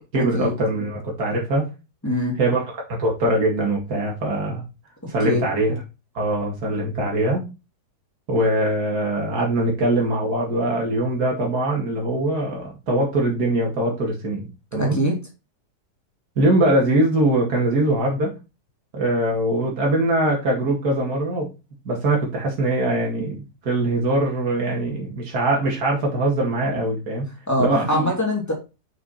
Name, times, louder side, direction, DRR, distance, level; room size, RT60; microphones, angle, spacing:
voice 1, 0.1-1.7 2.4-2.6 2.9-4.6 5.1-5.7 6.1-7.5 8.3-15.0 16.4-18.3 18.9-21.5 21.9-23.4 23.6-27.3 27.6-28.0, right 1 dB, 70° right, -1 dB, 2.7 m, -22 dB
voice 2, 2.0-2.4 5.2-5.4 14.8-15.2 27.5-28.5, left 1 dB, 10° left, 0 dB, 2.5 m, -23 dB
6.1 x 6.0 x 4.2 m, 0.28 s
omnidirectional pair, 1.7 m